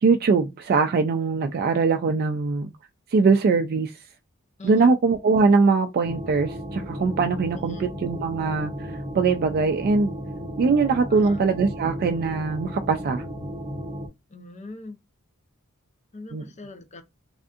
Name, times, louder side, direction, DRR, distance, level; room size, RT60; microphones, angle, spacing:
voice 1, 0.0-2.7 3.1-3.9 4.6-8.7 9.1-10.1 10.6-13.2 16.3-16.4, right 4 dB, 45° right, 0.3 m, -21 dB
voice 2, 4.6-4.9 7.5-7.9 11.1-11.5 14.3-15.0 16.1-17.0, left 2 dB, 35° left, 0.6 m, -42 dB
sound 1, 6.0-14.1, equal, 15° right, 0.7 m, -34 dB
3.4 x 2.6 x 2.4 m
head